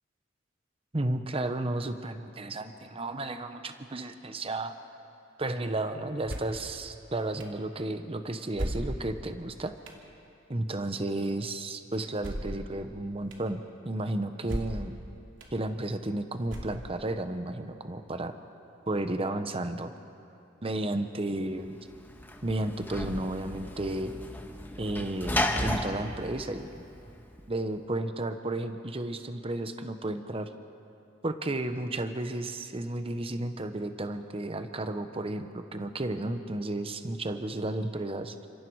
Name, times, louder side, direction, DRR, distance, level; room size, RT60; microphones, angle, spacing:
voice 1, 0.9-4.8 5.4-9.7 10.5-15.0 15.5-18.3 18.9-19.9 20.6-21.7 22.4-24.1 24.8-26.8 27.5-30.5 31.2-38.5, right 2 dB, 30° right, 8 dB, 0.9 m, -33 dB
sound 1, 6.3-6.6 7.4-7.5 8.5-9.2 9.9-10.0 12.2-12.7 13.3-13.4 14.4-14.9 15.4-15.5 16.5-17.0, equal, 75° right, 2.8 m, -35 dB
Sliding door / Slam, 21.6-27.4, left 1 dB, 10° left, 1.3 m, -34 dB
29.5 x 26.5 x 4.7 m, 2.7 s
head